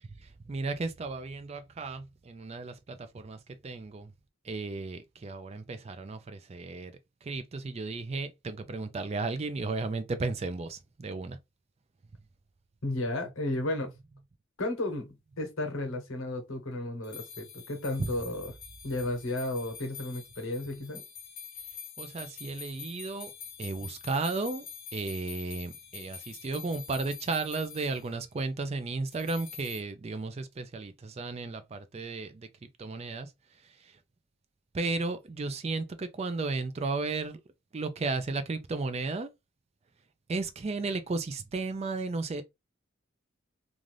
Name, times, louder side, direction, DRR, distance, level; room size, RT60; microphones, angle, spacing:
voice 1, 0.5-3.4 3.6-4.1 4.4-6.9 7.2-11.4 18.0-18.1 22.0-23.3 23.6-24.6 24.9-32.5 32.8-33.3 34.7-37.4 37.7-39.3 40.3-42.4, right 3 dB, 30° right, 0.3 m, -34 dB
voice 2, 12.8-13.9 14.6-18.5 18.8-21.0, left 1 dB, 80° left, 1.0 m, -33 dB
sound 1, 17.0-28.1 29.1-29.8, left 7 dB, 45° left, 0.8 m, -46 dB
2.5 x 2.5 x 3.2 m
head